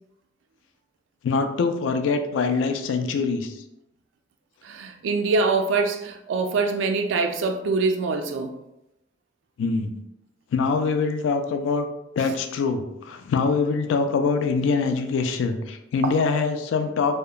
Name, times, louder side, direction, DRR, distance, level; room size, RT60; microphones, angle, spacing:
voice 1, 1.2-3.5 9.6-9.9 10.5-11.9 12.2-17.2, left 4 dB, 80° left, 0.3 m, -24 dB
voice 2, 4.6-8.6 16.0-16.1, right 4 dB, 75° right, 0.3 m, -24 dB
2.8 x 2.1 x 2.3 m
head